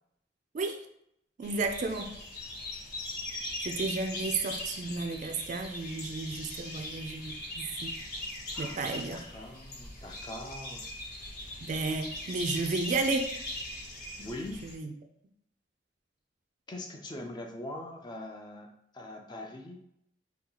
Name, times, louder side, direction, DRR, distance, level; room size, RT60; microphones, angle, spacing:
sound 1, 1.4-14.7, left 1 dB, 60° left, 0.8 m, -40 dB
voice 1, 1.4-2.1 3.6-7.9 8.6-9.2 11.6-13.3 14.6-14.9, right 3 dB, 45° right, 5 dB, 0.3 m, -32 dB
voice 2, 8.5-10.9 14.2-14.6 16.7-19.8, left 1 dB, 25° left, 2 dB, 0.4 m, -42 dB
2.8 x 2.3 x 3.7 m, 0.77 s
head